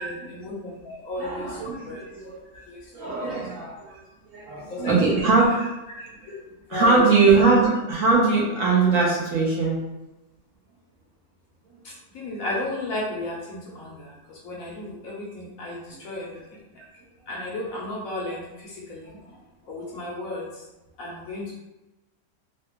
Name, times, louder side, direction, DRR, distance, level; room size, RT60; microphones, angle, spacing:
voice 1, 0.0-2.0 2.7-2.8 3.2-3.4 4.7-5.1 6.3-6.4 6.7-7.1 11.8-16.6 17.3-19.2 19.7-20.6 21.0-21.6, left 2 dB, 65° left, -3 dB, 0.9 m, -33 dB
voice 2, 1.2-2.6 2.9-4.0 4.3-6.1 6.7-9.8, right 4 dB, 65° right, -5 dB, 1.0 m, -21 dB
3.2 x 2.2 x 2.9 m, 1.0 s
omnidirectional pair, 1.8 m